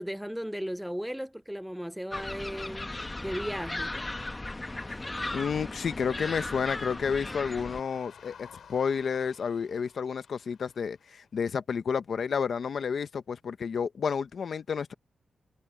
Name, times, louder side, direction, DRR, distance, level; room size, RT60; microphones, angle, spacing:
voice 1, 0.0-2.9 3.2-3.9, equal, ahead, 0.4 m, -35 dB
sound 1, 2.1-7.8, left 2 dB, 15° left, 0.9 m, -36 dB
voice 2, 5.3-14.9, left 6 dB, 55° left, 0.8 m, -31 dB
sound 2, 6.0-11.2, left 7 dB, 70° left, 6.0 m, -55 dB
wide cardioid pair, 175°, 0 cm